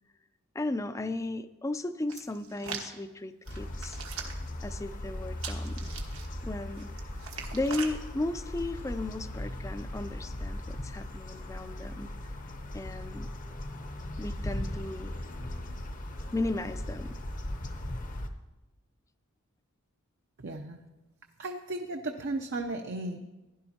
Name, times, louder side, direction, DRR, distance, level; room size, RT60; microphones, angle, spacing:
voice 1, 0.5-4.0 4.6-5.9 6.4-6.9 7.5-12.1 12.7-13.3 14.2-15.2 16.3-17.2, left 2 dB, 15° left, 12 dB, 0.4 m, -35 dB
Hands, 2.1-2.9 3.5-4.5 5.4-6.3 6.8-7.9 8.6-8.9, right 6 dB, 80° right, 1.4 m, -41 dB
sound 1, 3.5-18.3, left 1 dB, 40° left, 0.8 m, -38 dB
voice 2, 20.4-20.8 21.4-23.2, right 2 dB, 55° right, 4 dB, 0.6 m, -35 dB
16.0 x 11.0 x 2.8 m, 1.1 s
head